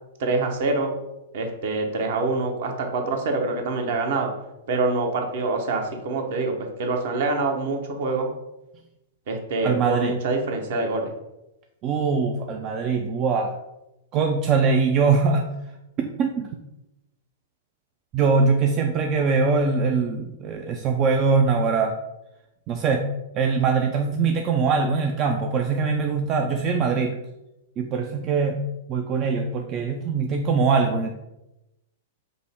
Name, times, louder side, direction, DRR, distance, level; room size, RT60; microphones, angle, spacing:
voice 1, 0.2-0.9 1.3-4.3 4.7-8.3 9.3-11.1, right 3 dB, 55° right, 3 dB, 0.7 m, -25 dB
voice 2, 9.6-10.1 11.8-13.5 14.1-15.5 16.0-16.5 18.1-21.9 22.7-23.0 23.3-27.2 27.8-28.6 28.9-31.1, right 5 dB, 35° right, 3 dB, 0.3 m, -22 dB
5.2 x 2.0 x 3.4 m, 0.93 s
figure-of-eight pair, 105°, 0 cm